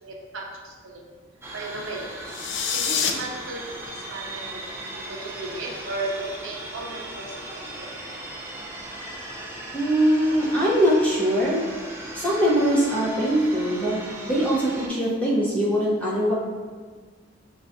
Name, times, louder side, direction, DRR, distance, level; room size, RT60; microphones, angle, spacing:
voice 1, 0.0-1.0 1.5-2.1 2.7-4.8 5.1-7.6, right 2 dB, 80° right, -1 dB, 0.6 m, -35 dB
sound 1, 1.4-14.9, right 1 dB, 10° right, 0.4 m, -38 dB
sound 2, 2.2-3.1, left 7 dB, 60° left, 0.4 m, -26 dB
voice 2, 9.7-11.6 12.1-14.0 14.2-16.3, equal, 5° left, -7 dB, 0.7 m, -22 dB
6.1 x 2.3 x 2.6 m, 1.5 s
head